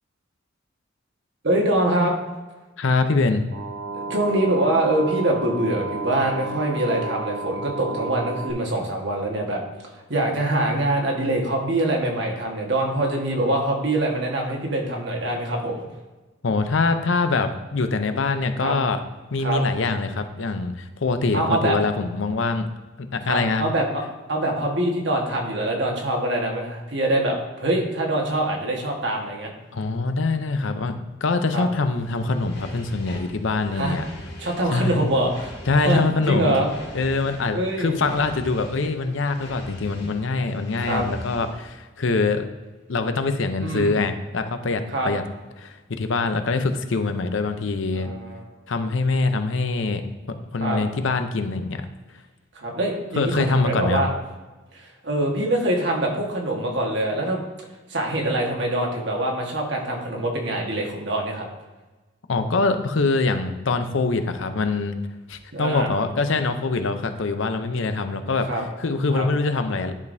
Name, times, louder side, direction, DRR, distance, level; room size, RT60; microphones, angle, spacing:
voice 1, 1.4-2.2 3.9-9.6 9.9-15.8 18.6-18.7 19.4-19.6 21.3-21.8 23.2-24.0 24.3-29.5 31.5-31.6 33.7-34.0 34.4-35.5 35.8-36.7 37.5-38.0 40.8-41.0 43.6-43.9 44.9-45.1 47.9-48.4 50.6-50.8 52.5-54.1 54.7-57.4 57.9-61.5 65.5-65.9 68.5-68.6 69.1-69.3, right 1 dB, 60° right, 0 dB, 1.4 m, -24 dB
voice 2, 2.8-3.4 16.4-19.0 19.3-22.7 23.0-23.7 29.7-34.0 34.7-35.0 35.7-36.6 36.9-42.4 42.9-45.2 45.6-48.1 48.7-50.1 50.5-51.9 53.2-54.0 62.3-64.9 65.3-68.5 68.8-69.9, left 3 dB, 70° left, 8 dB, 0.6 m, -24 dB
sound 1, 3.5-8.5, right 3 dB, 85° right, 0.9 m, -32 dB
sound 2, 32.0-41.7, left 1 dB, 55° left, 1.9 m, -42 dB
10.5 x 5.1 x 2.7 m, 1.2 s
head